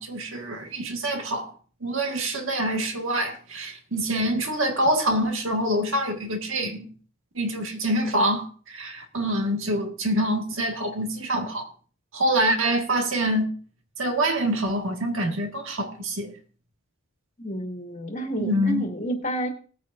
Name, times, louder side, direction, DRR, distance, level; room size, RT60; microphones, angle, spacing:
voice 1, 0.0-1.5 1.8-6.9 7.3-11.7 12.1-13.5 14.0-16.3 18.4-18.8, right 1 dB, 60° right, 1.7 m, -26 dB
voice 2, 17.4-19.5, right 1 dB, 35° left, 1.9 m, -30 dB
19.5 x 9.6 x 2.6 m
head